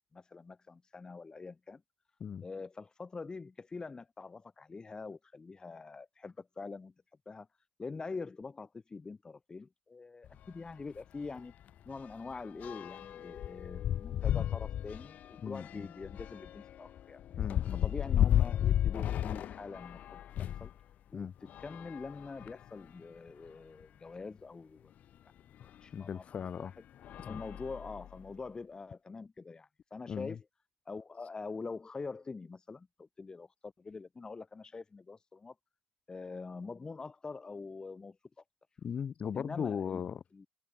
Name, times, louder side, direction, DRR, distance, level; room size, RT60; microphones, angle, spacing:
voice 1, 0.1-1.8 2.4-6.9 7.3-7.5 7.8-11.5 11.9-17.2 17.8-20.7 21.1-24.9 25.6-26.2 26.6-26.7 27.3-30.4 30.9-35.5 36.1-38.2 39.3-40.0 40.3-40.5, left 4 dB, 30° left, 3.9 m, -44 dB
sound 1, 10.2-10.4 10.8-11.0 11.2-20.7 21.4-22.8 23.5-23.6 23.8-23.9 25.6-25.7 26.4-26.6 27.0-28.3, left 11 dB, 65° left, 1.9 m, -34 dB
voice 2, 15.4-15.9 17.4-17.9 21.1-21.3 25.9-26.7 27.2-27.4 30.1-30.4 38.8-40.2, left 7 dB, 50° left, 4.4 m, -38 dB
cardioid pair, 85°, 3 cm